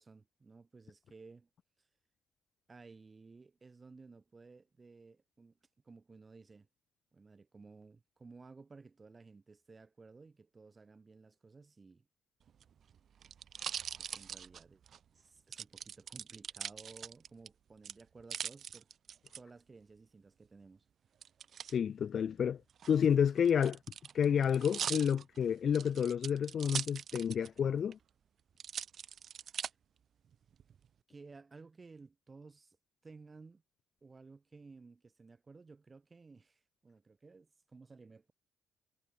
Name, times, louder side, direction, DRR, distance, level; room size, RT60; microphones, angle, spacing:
voice 1, 0.0-1.5 2.7-5.6 5.8-6.7 7.1-12.1 14.0-14.8 15.1-18.9 19.4-20.8 29.6-29.8 31.1-32.8 33.0-33.6 34.0-38.3, right 4 dB, 30° right, 5.1 m, -56 dB
sound 1, 12.5-15.0 15.5-17.5 17.8-19.4 21.2-21.7 22.7-27.6 27.9-28.0 28.6-29.7 30.3-30.9, right 8 dB, 60° right, 1.2 m, -42 dB
voice 2, 21.7-22.6 22.9-23.8 24.1-28.0, left 8 dB, 55° left, 0.3 m, -30 dB
cardioid pair, 90°, 0 cm